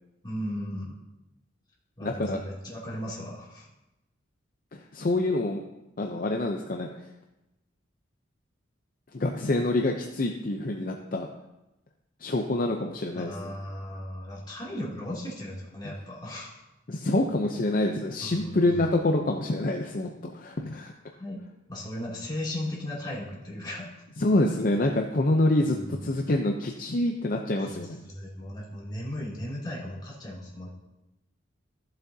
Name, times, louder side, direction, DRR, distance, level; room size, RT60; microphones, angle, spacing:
voice 1, 0.2-1.0 2.0-3.7 13.1-16.6 18.2-18.9 21.2-21.4 21.7-23.9 25.7-26.3 27.7-27.8 28.0-30.7, left 1 dB, 20° left, -6 dB, 2.7 m, -36 dB
voice 2, 2.0-2.4 4.7-5.6 6.0-7.1 9.1-11.3 12.2-13.5 15.8-15.9 16.9-20.9 24.2-28.0, left 2 dB, 45° left, 2 dB, 0.6 m, -26 dB
14.5 x 7.6 x 2.8 m, 0.97 s
head